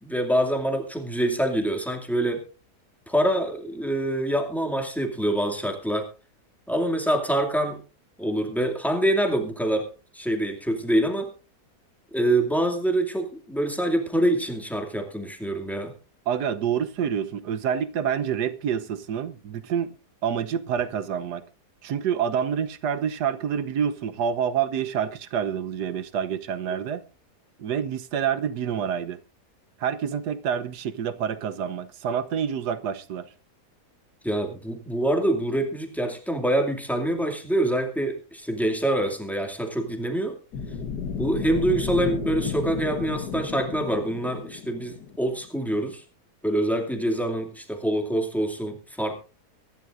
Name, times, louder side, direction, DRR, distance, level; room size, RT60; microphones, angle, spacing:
voice 1, 0.0-2.4 3.1-6.1 6.7-7.8 8.2-9.9 10.1-11.3 12.1-15.9 34.2-40.4 41.2-46.0 46.4-49.2, right 1 dB, ahead, 2.4 m, -25 dB
voice 2, 16.3-19.9 20.2-21.4 21.8-27.0 27.6-29.2 29.8-33.3, right 8 dB, 85° right, 1.5 m, -27 dB
sound 1, 40.5-45.5, left 6 dB, 80° left, 1.8 m, -32 dB
23.5 x 11.5 x 2.6 m
omnidirectional pair, 1.7 m